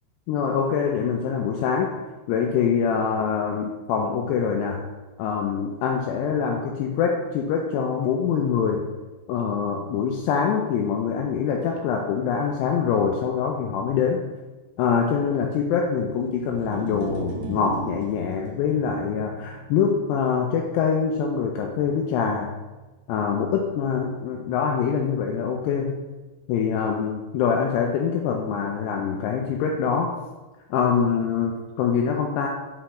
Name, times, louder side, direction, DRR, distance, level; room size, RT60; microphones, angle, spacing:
voice 1, 0.3-1.9 2.3-4.8 5.2-8.8 9.3-14.2 14.8-22.5 23.1-25.9 26.5-30.1 30.7-32.5, left 6 dB, 85° left, 1 dB, 2.4 m, -24 dB
sound 1, 16.3-22.7, right 4 dB, 80° right, 2.7 m, -38 dB
7.7 x 4.2 x 3.0 m, 1.2 s
omnidirectional pair, 5.3 m